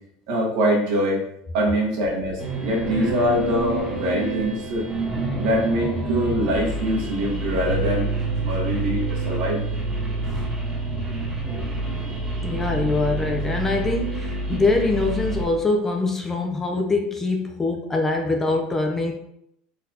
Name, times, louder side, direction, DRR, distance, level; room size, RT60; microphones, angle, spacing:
voice 1, 0.3-1.2 1.5-4.9 5.4-8.1 8.4-9.6 14.5-14.6, equal, 65° right, -2 dB, 1.3 m, -24 dB
sound 1, 2.4-15.4, right 1 dB, 15° right, 1.1 m, -29 dB
sound 2, 7.7-14.0, right 7 dB, 90° right, 0.5 m, -30 dB
voice 2, 12.4-19.1, left 3 dB, 10° left, 2 dB, 0.4 m, -23 dB
3.9 x 3.7 x 2.7 m, 0.74 s
cardioid pair, 170°, 3 cm